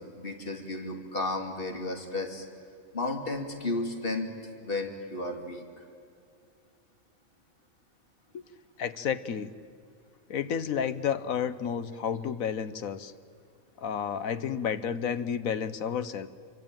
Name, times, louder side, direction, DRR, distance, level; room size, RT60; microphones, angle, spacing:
voice 1, 0.0-2.4 2.9-4.3 4.6-5.6, left 2 dB, 40° left, 3 dB, 3.0 m, -33 dB
voice 2, 8.8-9.5 10.3-13.1 13.8-16.3, left 7 dB, 80° left, 13 dB, 1.4 m, -31 dB
27.0 x 24.5 x 9.0 m, 2.4 s
omnidirectional pair, 1.4 m